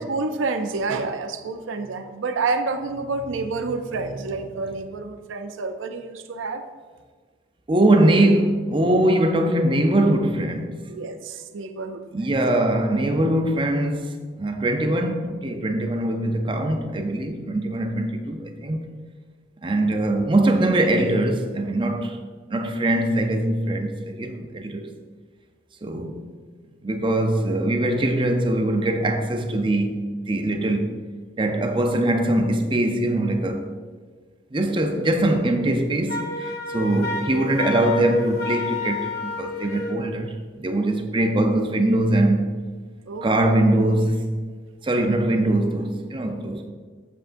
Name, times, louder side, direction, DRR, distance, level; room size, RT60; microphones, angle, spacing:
voice 1, 0.0-6.6 10.9-12.0 43.1-43.4, right 3 dB, 75° right, 0.5 m, -28 dB
voice 2, 7.7-10.9 12.1-18.9 19.6-22.2 22.5-24.9 25.8-26.3 26.8-31.0 31.4-33.6 34.5-42.6 43.2-44.3 44.8-46.7, right 1 dB, 25° right, 0.5 m, -22 dB
Wind instrument woodwind instrument, 36.1-40.0, left 3 dB, 55° left, 0.6 m, -30 dB
7.7 x 7.3 x 2.6 m
head